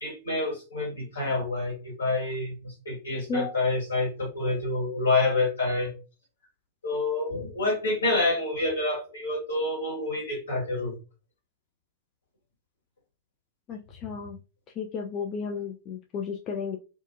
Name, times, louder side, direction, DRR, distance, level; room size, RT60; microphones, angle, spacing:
voice 1, 0.0-5.9 6.8-10.9, left 2 dB, 70° left, -2 dB, 1.4 m, -28 dB
voice 2, 13.7-14.4 14.8-16.8, left 5 dB, 35° left, 2 dB, 0.3 m, -33 dB
2.5 x 2.5 x 2.5 m, 0.32 s
figure-of-eight pair, 90°, 0 cm